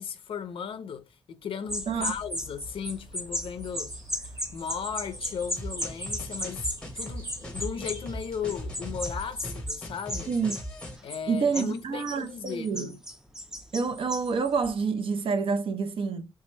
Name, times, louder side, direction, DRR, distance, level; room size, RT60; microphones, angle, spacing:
voice 1, 0.0-3.9 4.2-6.7 7.0-10.4 11.0-13.0, left 7 dB, 70° left, 0.4 m, -36 dB
sound 1, 1.7-14.7, equal, 5° right, 0.4 m, -36 dB
sound 2, 1.7-9.6, right 1 dB, 40° right, 0.9 m, -47 dB
sound 3, 5.6-11.0, equal, 10° left, 0.8 m, -39 dB
voice 2, 11.3-13.0 13.7-16.3, right 5 dB, 70° right, 0.5 m, -28 dB
3.3 x 2.1 x 3.1 m
wide cardioid pair, 150°, 9 cm